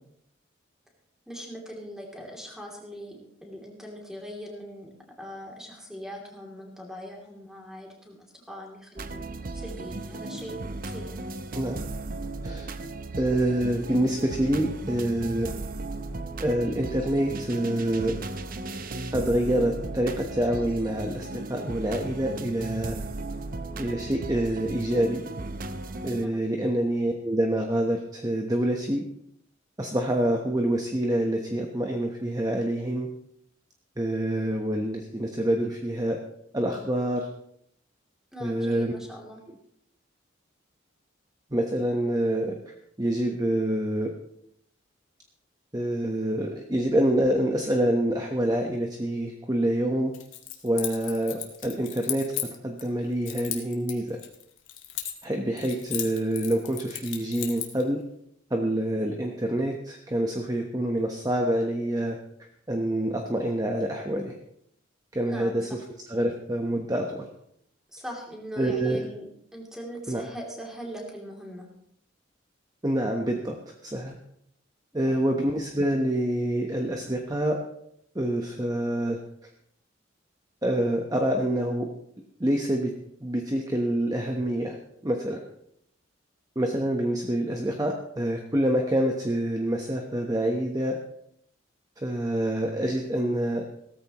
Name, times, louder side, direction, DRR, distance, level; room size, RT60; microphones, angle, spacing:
voice 1, 1.3-4.9 5.2-10.5 10.8-11.1 26.1-26.4 38.3-39.4 65.3-65.8 67.9-71.7 74.9-75.2, equal, 5° right, -1 dB, 2.9 m, -41 dB
sound 1, 9.0-26.3, right 2 dB, 45° right, 0.7 m, -36 dB
voice 2, 11.5-11.9 12.4-12.7 13.2-15.5 16.4-18.2 19.1-23.0 23.8-25.2 26.0-29.0 29.8-33.1 34.0-36.2 36.5-37.3 38.4-38.9 41.5-44.1 45.7-50.1 50.6-52.3 52.6-54.2 55.2-58.0 58.5-62.2 62.7-64.4 65.1-65.8 66.1-67.3 68.6-69.1 70.1-70.2 72.8-74.2 74.9-77.6 78.1-79.2 80.6-81.9 82.4-82.9 83.2-84.8 85.0-85.4 86.5-91.0 92.0-93.6, right 1 dB, 20° right, 2 dB, 1.1 m, -26 dB
Keys jangling, 50.1-52.9 53.3-55.3 55.6-57.8, left 12 dB, 90° left, 1.9 m, -35 dB
17.0 x 14.0 x 3.0 m, 0.72 s
head